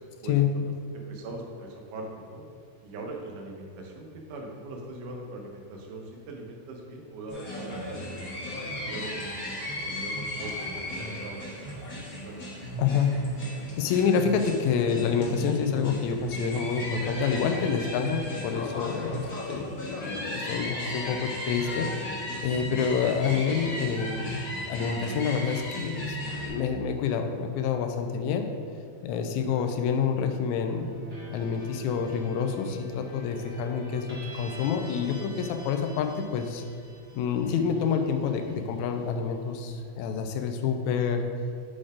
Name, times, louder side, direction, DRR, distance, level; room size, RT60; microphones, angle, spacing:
voice 1, 0.2-0.6 1.1-2.4 2.8-8.2 8.5-9.1 9.8-11.6 11.9-12.7, right 2 dB, 90° right, 0 dB, 2.5 m, -41 dB
sound 1, 7.3-26.5, equal, 40° left, 1.4 m, -36 dB
voice 2, 12.8-13.2 13.8-24.4 24.7-28.5 29.0-30.9 31.3-36.6 37.1-41.3, left 6 dB, 80° left, 5 dB, 1.9 m, -28 dB
sound 2, 30.6-39.5, right 1 dB, 35° right, 1.4 m, -46 dB
7.6 x 4.2 x 4.9 m, 2.2 s
omnidirectional pair, 3.6 m